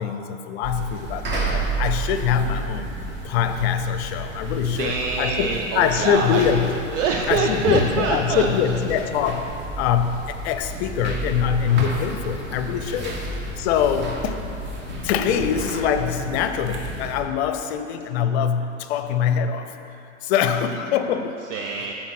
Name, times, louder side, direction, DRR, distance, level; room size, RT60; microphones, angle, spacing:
voice 1, 0.0-2.9 3.2-6.7 7.3-9.5 9.8-13.2 13.6-14.4 15.0-19.7 20.2-21.4, left 8 dB, 50° left, 9 dB, 0.6 m, -23 dB
sound 1, 0.6-17.2, right 2 dB, 25° right, 1.2 m, -31 dB
voice 2, 4.7-6.5 6.9-8.7 21.5-21.9, right 5 dB, 65° right, 2 dB, 0.6 m, -25 dB
7.4 x 4.4 x 5.8 m, 2.8 s
hypercardioid pair, 105°, 41 cm